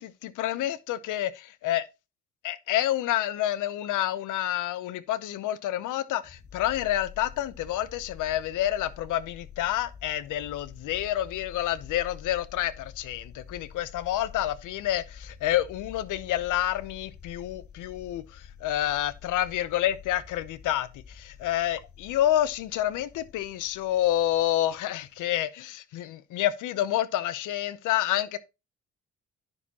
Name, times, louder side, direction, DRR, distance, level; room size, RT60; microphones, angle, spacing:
voice 1, 0.0-1.9 2.4-28.4, left 13 dB, 85° left, 0.7 m, -28 dB
sound 1, 6.2-25.4, left 7 dB, 45° left, 1.5 m, -48 dB
9.8 x 6.3 x 2.9 m
cardioid pair, 90°, 30 cm